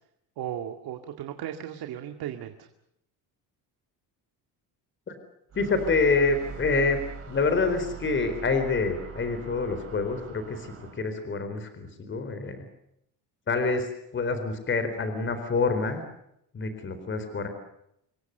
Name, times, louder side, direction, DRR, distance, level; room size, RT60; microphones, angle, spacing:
voice 1, 0.4-2.7, right 10 dB, 70° right, 6 dB, 2.2 m, -36 dB
voice 2, 5.5-7.0 7.3-12.7 13.5-16.0 16.5-17.5, left 4 dB, 30° left, 9 dB, 4.2 m, -27 dB
sound 1, 5.5-11.2, right 6 dB, 35° right, 4.7 m, -42 dB
27.5 x 23.0 x 6.7 m, 0.76 s
cardioid pair, 155°, 39 cm